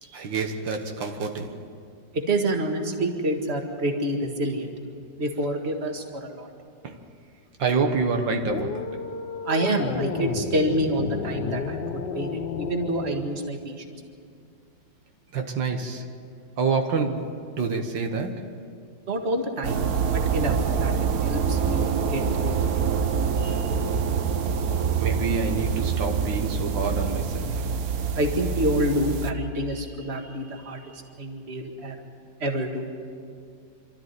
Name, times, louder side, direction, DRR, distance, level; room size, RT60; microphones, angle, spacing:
voice 1, 0.0-1.7 6.8-7.0 7.6-9.0 15.3-16.1 16.6-18.6 23.4-23.8 25.0-27.7 29.7-29.8 30.2-30.9, right 4 dB, 80° right, 2.1 m, -28 dB
voice 2, 2.1-4.7 5.2-6.5 9.5-13.8 19.1-19.8 20.1-20.9 21.2-23.0 28.2-30.8 31.2-32.0 32.4-32.8, right 1 dB, 35° right, 2.1 m, -27 dB
sound 1, 8.4-13.2, left 6 dB, 70° left, 1.6 m, -32 dB
sound 2, 19.6-29.3, right 6 dB, 60° right, 1.3 m, -25 dB
27.0 x 13.5 x 9.6 m
omnidirectional pair, 2.0 m